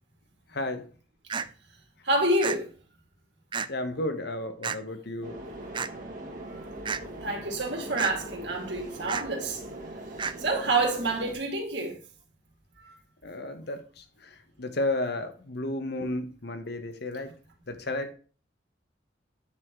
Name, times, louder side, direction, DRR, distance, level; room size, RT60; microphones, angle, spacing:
voice 1, 0.5-0.8 3.7-5.4 13.2-14.3 14.6-17.3 17.7-18.1, left 2 dB, 55° left, 1.1 m, -32 dB
sound 1, 1.3-1.5 2.4-2.6 3.5-3.7 4.6-4.8 5.7-5.9 6.8-7.0 8.0-8.1 9.1-9.3 10.2-10.3, right 6 dB, 25° right, 0.3 m, -31 dB
voice 2, 2.0-2.7 7.2-9.6 10.4-12.0 12.8-12.9, right 2 dB, 60° right, 2.4 m, -27 dB
sound 2, 5.2-11.3, right 1 dB, 45° right, 2.0 m, -41 dB
9.4 x 4.3 x 4.6 m
head